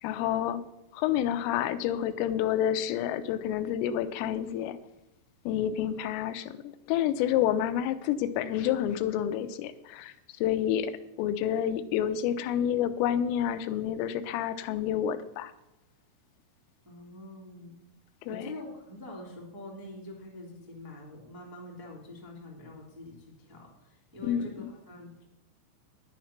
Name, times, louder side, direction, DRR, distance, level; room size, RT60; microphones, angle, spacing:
voice 1, 0.0-0.6 0.9-4.8 5.5-10.9 11.2-15.5 18.2-18.5 24.2-24.7, left 10 dB, 90° left, 11 dB, 3.4 m, -29 dB
voice 2, 16.8-17.8 18.3-25.2, left 1 dB, 10° right, -3 dB, 1.1 m, -45 dB
10.5 x 10.0 x 5.9 m, 0.90 s
omnidirectional pair, 5.7 m